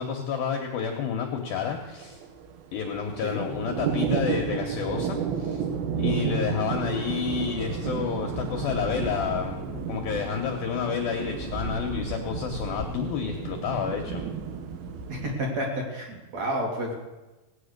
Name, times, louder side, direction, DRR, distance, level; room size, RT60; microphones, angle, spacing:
voice 1, 0.0-2.2 2.7-5.6 6.0-14.3, left 7 dB, 75° left, 2 dB, 2.2 m, -30 dB
sound 1, 1.5-15.4, right 6 dB, 75° right, 2.3 m, -32 dB
voice 2, 6.2-6.6 15.1-17.0, equal, 45° right, 1 dB, 2.7 m, -31 dB
18.0 x 8.7 x 6.6 m, 1.1 s
omnidirectional pair, 5.7 m